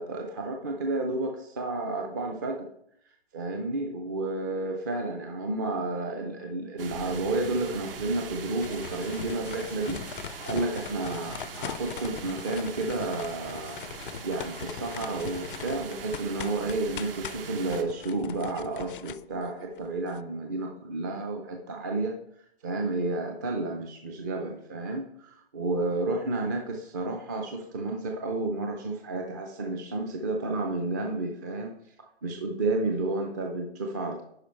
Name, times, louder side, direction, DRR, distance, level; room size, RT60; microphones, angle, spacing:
voice 1, 0.0-2.7 3.3-13.8 14.2-22.1 22.6-31.8 32.2-34.2, right 2 dB, 20° right, 2 dB, 0.5 m, -31 dB
sound 1, 6.8-17.8, right 6 dB, 60° right, 1.1 m, -41 dB
sound 2, 8.6-20.2, left 9 dB, 55° left, 0.4 m, -41 dB
10.5 x 4.6 x 4.4 m, 0.71 s
hypercardioid pair, 155°, 32 cm